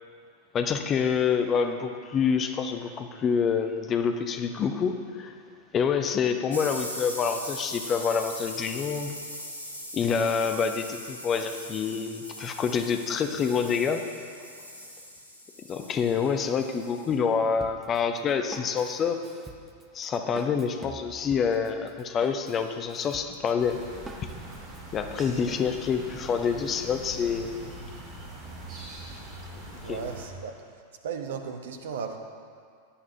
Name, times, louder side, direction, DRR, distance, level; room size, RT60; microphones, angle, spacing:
voice 1, 0.5-5.3 5.7-9.1 9.9-14.0 15.7-19.2 19.9-23.8 24.2-24.3 24.9-27.6 29.8-30.0, left 6 dB, 25° left, 7 dB, 0.9 m, -27 dB
sound 1, 6.5-17.1, equal, 85° left, 1.5 m, -40 dB
Drum kit, 17.6-24.8, right 3 dB, 10° right, 0.9 m, -46 dB
sound 2, 23.6-30.3, right 1 dB, 35° right, 3.4 m, -42 dB
voice 2, 29.8-30.5 31.0-32.2, right 6 dB, 60° right, 6 dB, 1.0 m, -35 dB
17.0 x 11.0 x 2.8 m, 2.2 s
figure-of-eight pair, 90°, 0 cm